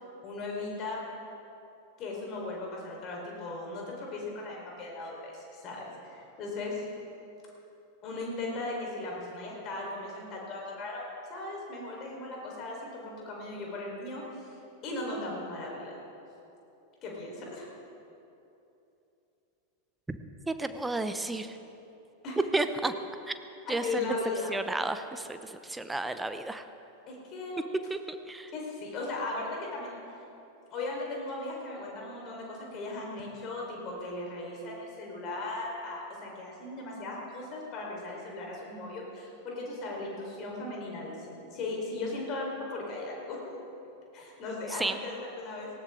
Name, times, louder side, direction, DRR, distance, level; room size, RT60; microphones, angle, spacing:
voice 1, 0.2-1.0 2.0-6.9 8.0-14.5 14.8-16.0 17.0-17.7 22.2-22.4 23.7-24.5 27.1-27.6 28.5-30.0 30.7-43.6 44.1-45.7, left 2 dB, 35° left, -2 dB, 4.3 m, -37 dB
voice 2, 20.5-21.6 22.5-22.9 23.3-23.4 23.7-23.9 24.5-26.6 27.9-28.5 44.8-45.0, right 2 dB, 10° right, 10 dB, 0.8 m, -32 dB
18.5 x 17.0 x 3.8 m, 2.9 s
figure-of-eight pair, 90°, 0 cm